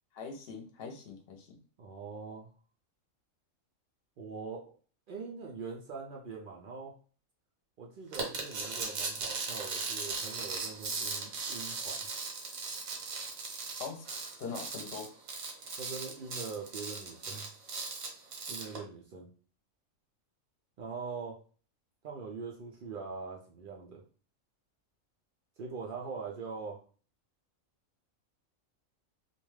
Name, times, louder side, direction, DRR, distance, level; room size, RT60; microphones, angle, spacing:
voice 1, 0.1-1.6 13.8-14.1 14.4-15.1, left 5 dB, 55° left, 3 dB, 0.8 m, -42 dB
voice 2, 1.8-2.5 4.2-4.7 5.1-6.9 7.8-12.1 15.8-17.6 18.5-19.3 20.8-21.4 22.0-24.0 25.6-26.8, right 4 dB, 70° right, 0 dB, 0.5 m, -42 dB
sound 1, 8.1-18.8, right 4 dB, 85° right, 1.2 m, -38 dB
2.5 x 2.2 x 3.1 m, 0.41 s
omnidirectional pair, 1.4 m